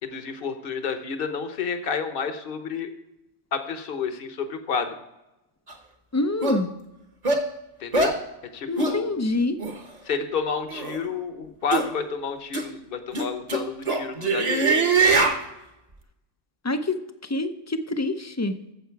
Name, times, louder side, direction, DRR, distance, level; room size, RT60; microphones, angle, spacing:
voice 1, 0.0-2.9 3.5-4.9 7.8-8.1 8.5-9.1 10.0-14.7 15.0-15.3, left 6 dB, 50° left, 8 dB, 1.2 m, -30 dB
sound 1, 5.7-5.8 6.4-6.6 7.2-7.4 7.9-8.2 8.8-9.0 9.6-9.7 10.7-11.0 11.7-11.9 12.5-12.6 13.1-15.4, right 4 dB, 35° right, 1.1 m, -22 dB
voice 2, 6.1-6.7 8.7-9.6 16.6-17.0 17.3-18.6, left 2 dB, 20° left, 9 dB, 0.4 m, -26 dB
13.0 x 7.7 x 4.6 m, 0.93 s
omnidirectional pair, 1.2 m